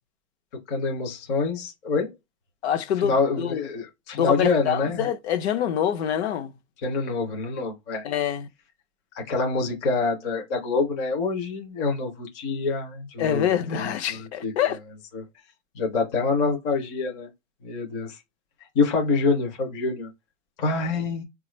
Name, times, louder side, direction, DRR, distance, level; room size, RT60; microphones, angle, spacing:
voice 1, 0.7-2.1 3.0-5.1 6.8-8.0 9.1-14.8 15.1-15.2 15.8-17.3 17.6-18.2 18.7-20.1 20.6-21.2, left 4 dB, 20° left, 0.4 m, -26 dB
voice 2, 2.6-3.7 4.1-6.5 8.0-8.5 13.2-14.8, left 9 dB, 60° left, 0.7 m, -25 dB
4.3 x 2.3 x 3.0 m
supercardioid pair, 170°, 37 cm